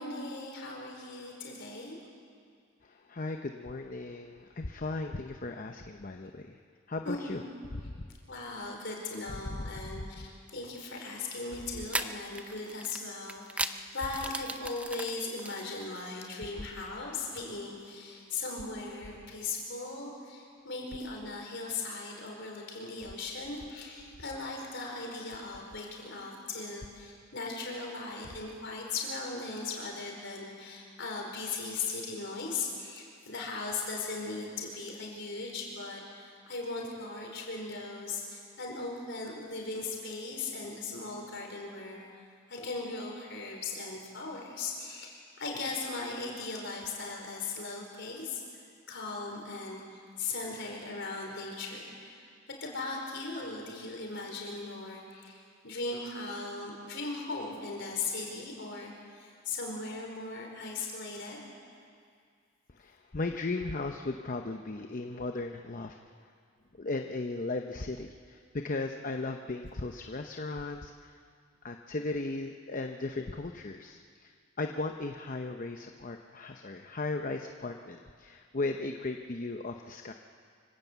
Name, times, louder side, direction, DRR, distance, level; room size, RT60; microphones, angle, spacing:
voice 1, 0.0-2.0 7.0-7.4 8.3-42.2 42.5-61.4, left 3 dB, 60° left, 0 dB, 4.7 m, -38 dB
voice 2, 2.8-6.6 6.9-7.4 7.8-7.9 9.5-9.6 10.0-10.1 62.8-66.0 66.8-71.2 71.6-74.3 74.6-80.1, left 2 dB, 40° left, 5 dB, 0.8 m, -36 dB
sound 1, 10.8-11.0 11.9-16.2, right 2 dB, 5° right, 0.5 m, -37 dB
25.5 x 16.5 x 8.2 m, 2.2 s
head